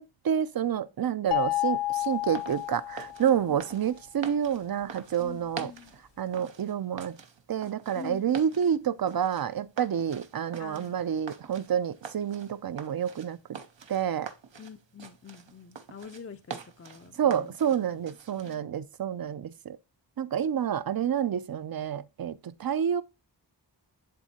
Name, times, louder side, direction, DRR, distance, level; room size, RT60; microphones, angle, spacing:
voice 1, 0.0-5.7 6.2-7.2 7.5-13.4 13.9-14.3 17.2-19.8 20.2-23.0, right 8 dB, 55° right, 0.5 m, -29 dB
sound 1, 1.3-3.5, left 15 dB, 65° left, 0.8 m, -30 dB
sound 2, 1.9-18.6, right 6 dB, 85° right, 0.7 m, -46 dB
voice 2, 3.2-3.6 5.2-6.0 8.0-8.5 10.6-11.0 14.6-17.5 18.0-18.1 18.3-18.7, left 6 dB, 35° left, 0.4 m, -46 dB
10.5 x 3.6 x 2.8 m
wide cardioid pair, 45°, 44 cm